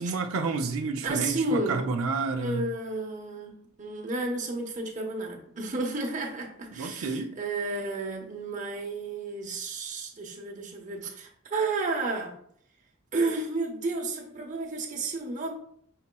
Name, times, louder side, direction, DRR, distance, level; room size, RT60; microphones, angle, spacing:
voice 1, 0.0-2.6 6.7-7.4, right 4 dB, 80° right, 5 dB, 0.5 m, -30 dB
voice 2, 1.0-1.9 2.4-12.3 13.1-15.5, right 3 dB, 35° right, 1 dB, 0.9 m, -32 dB
5.7 x 4.1 x 2.2 m, 0.65 s
head